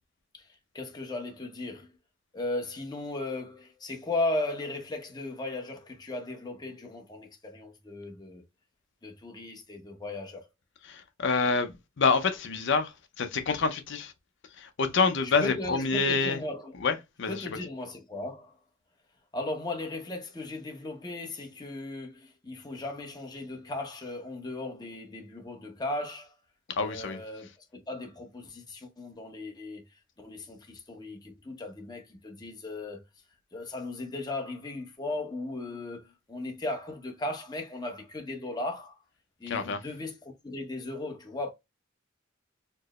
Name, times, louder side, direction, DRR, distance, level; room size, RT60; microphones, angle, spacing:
voice 1, 0.7-1.9 2.3-8.4 9.0-10.5 15.2-16.7 17.3-18.5 19.3-26.3 26.8-29.8 30.2-33.0 33.5-39.0 39.4-41.5, left 2 dB, 20° left, 0.8 m, -36 dB
voice 2, 10.9-14.1 14.6-16.4 16.8-17.4 26.7-27.2 39.5-39.8, left 4 dB, 65° left, 0.6 m, -27 dB
4.4 x 2.1 x 2.9 m
head